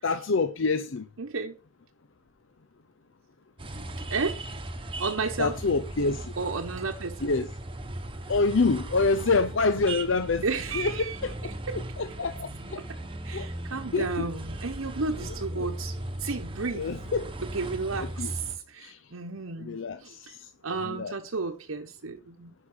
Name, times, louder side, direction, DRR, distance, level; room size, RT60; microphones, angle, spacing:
voice 1, 0.0-1.1 5.4-6.2 7.2-7.5 8.3-10.4 10.7-11.3 12.0-12.8 13.3-13.5 13.9-14.3 15.6-15.7 16.7-17.3 18.0-18.3 18.8-19.0 19.6-20.5 20.8-21.1, left 3 dB, 65° left, 0.6 m, -27 dB
voice 2, 1.2-1.6 4.1-4.4 5.0-5.6 6.4-7.3 10.4-11.2 11.4-11.8 12.8-12.9 13.2-16.9 17.4-20.3 20.6-22.5, right 4 dB, 85° right, 1.0 m, -33 dB
sound 1, 3.6-18.6, right 1 dB, 25° right, 1.1 m, -38 dB
10.5 x 5.8 x 6.1 m
head